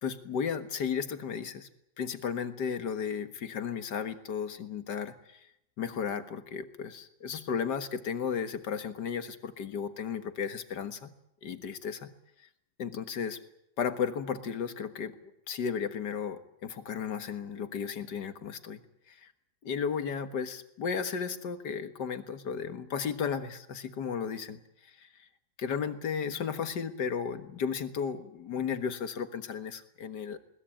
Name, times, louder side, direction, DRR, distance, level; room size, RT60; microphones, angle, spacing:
voice 1, 0.0-1.7 2.0-5.4 5.8-11.1 11.4-12.1 12.8-13.4 13.8-15.2 15.5-19.3 19.6-25.1 25.6-30.4, left 6 dB, 65° left, 9 dB, 2.1 m, -34 dB
21.5 x 20.0 x 8.8 m, 0.80 s
omnidirectional pair, 2.0 m